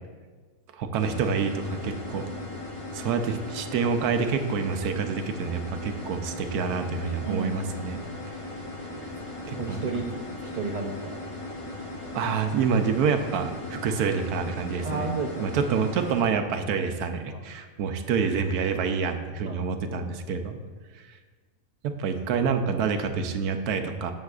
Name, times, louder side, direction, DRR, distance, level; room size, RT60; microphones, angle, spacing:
voice 1, 0.7-2.3 2.9-8.4 9.5-9.8 12.1-15.1 15.4-20.6 20.9-21.0 21.8-24.1, right 6 dB, 85° right, 7 dB, 1.2 m, -27 dB
take off sample, 1.0-16.2, left 2 dB, 25° left, 0.9 m, -38 dB
voice 2, 9.5-10.1 10.4-11.2 14.8-15.4 17.3-17.4 19.4-19.8, right 4 dB, 45° right, 0 dB, 0.5 m, -32 dB
12.5 x 7.4 x 2.4 m, 1.4 s
omnidirectional pair, 1.6 m